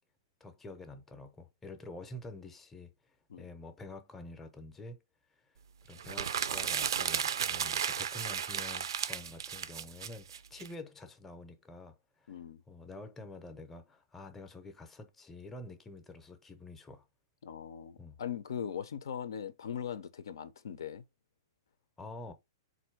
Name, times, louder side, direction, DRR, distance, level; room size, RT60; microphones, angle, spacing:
voice 1, 0.4-2.9 3.4-5.0 5.8-12.3 12.7-17.1 18.0-18.2 22.0-22.3, left 2 dB, 10° left, 0.6 m, -48 dB
sound 1, 6.0-10.7, right 8 dB, 85° right, 0.4 m, -34 dB
voice 2, 12.3-12.6 17.4-21.0, left 8 dB, 80° left, 0.6 m, -40 dB
4.0 x 2.6 x 4.5 m
hypercardioid pair, 155°, 2 cm